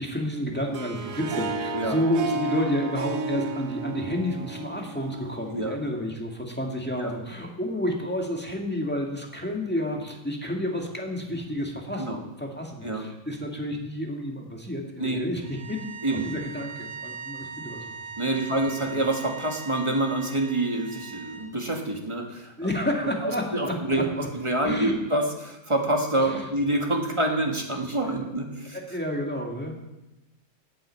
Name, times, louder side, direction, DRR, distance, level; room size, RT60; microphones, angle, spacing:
voice 1, 0.0-17.8 18.3-18.5 18.9-19.0 22.6-24.0 24.6-24.9 26.2-26.5 27.9-28.2 28.7-29.8, equal, 5° left, 0 dB, 1.6 m, -30 dB
Harp, 0.5-5.7, right 2 dB, 65° right, 1.2 m, -32 dB
sound 1, 15.4-21.5, right 5 dB, 85° right, 1.6 m, -40 dB
voice 2, 18.2-22.5 23.2-24.0 24.3-28.8, right 1 dB, 20° right, 1 dB, 1.5 m, -27 dB
9.7 x 7.7 x 7.5 m, 0.96 s
omnidirectional pair, 1.6 m